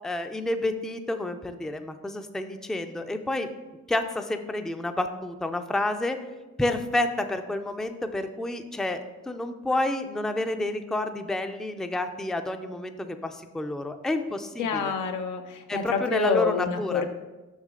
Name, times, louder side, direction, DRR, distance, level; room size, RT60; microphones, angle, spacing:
voice 1, 0.0-3.5 3.9-6.2 6.6-9.0 9.3-14.9 15.7-17.0, left 2 dB, ahead, 7 dB, 0.4 m, -29 dB
voice 2, 14.6-17.1, left 5 dB, 85° left, 6 dB, 0.7 m, -27 dB
6.4 x 6.0 x 3.7 m, 1.1 s
cardioid pair, 90°, 30 cm